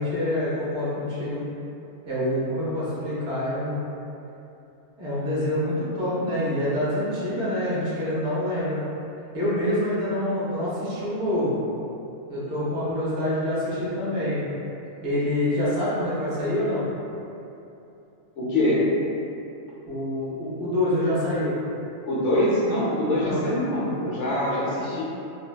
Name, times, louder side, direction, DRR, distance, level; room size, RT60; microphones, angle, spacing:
voice 1, 0.0-1.4 2.1-3.8 5.0-8.8 9.3-11.6 12.3-14.4 15.0-16.8 19.9-21.6 23.2-23.5, left 1 dB, 60° right, -9 dB, 1.0 m, -26 dB
voice 2, 18.4-18.8 22.0-25.0, left 1 dB, 65° left, -8 dB, 0.9 m, -24 dB
3.3 x 2.0 x 2.2 m, 2.8 s
omnidirectional pair, 1.4 m